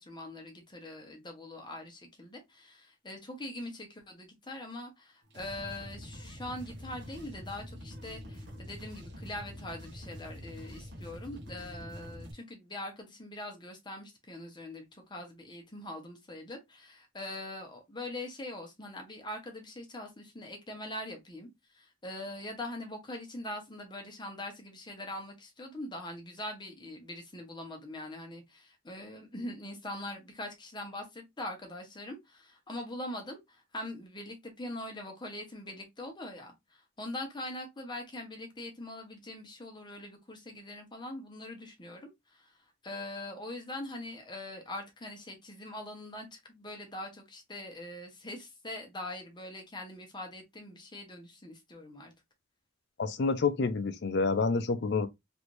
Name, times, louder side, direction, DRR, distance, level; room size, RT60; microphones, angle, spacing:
voice 1, 0.0-21.5 21.7-42.6 42.8-52.1, left 1 dB, 20° left, 0.9 m, -42 dB
sound 1, 5.3-12.3, equal, 55° right, 0.9 m, -45 dB
voice 2, 53.0-55.1, left 4 dB, 55° left, 0.5 m, -28 dB
3.2 x 2.6 x 3.0 m
head